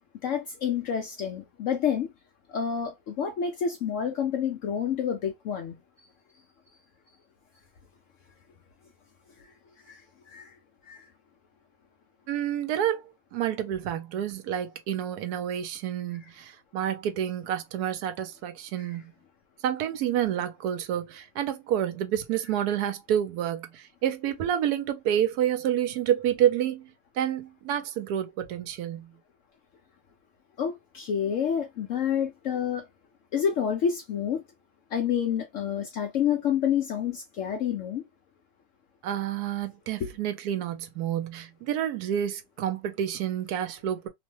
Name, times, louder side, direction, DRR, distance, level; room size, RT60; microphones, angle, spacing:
voice 1, 0.2-2.1 2.5-5.8 9.9-10.0 10.3-10.5 10.9-11.0 30.6-32.9 33.3-34.4 34.9-38.0 40.0-40.1, left 8 dB, 70° left, 0.7 m, -28 dB
voice 2, 12.3-13.0 13.3-19.0 19.6-26.9 27.2-29.1 39.0-44.1, right 10 dB, 75° right, 1.1 m, -29 dB
2.9 x 2.1 x 3.0 m
omnidirectional pair, 1.7 m